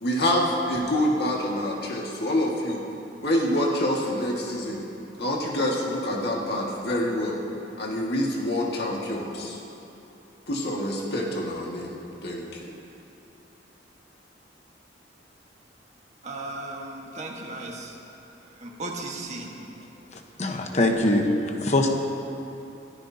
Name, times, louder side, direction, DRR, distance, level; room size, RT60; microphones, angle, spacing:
voice 1, 0.0-2.8 3.2-4.8 5.2-7.4 7.8-9.6 10.5-12.7, left 1 dB, 60° left, -2 dB, 1.9 m, -26 dB
voice 2, 16.2-17.9 18.6-19.5, right 2 dB, 40° right, 0 dB, 1.5 m, -36 dB
voice 3, 20.4-21.9, left 1 dB, 40° left, 3 dB, 1.1 m, -22 dB
22.0 x 14.0 x 2.8 m, 2.9 s
head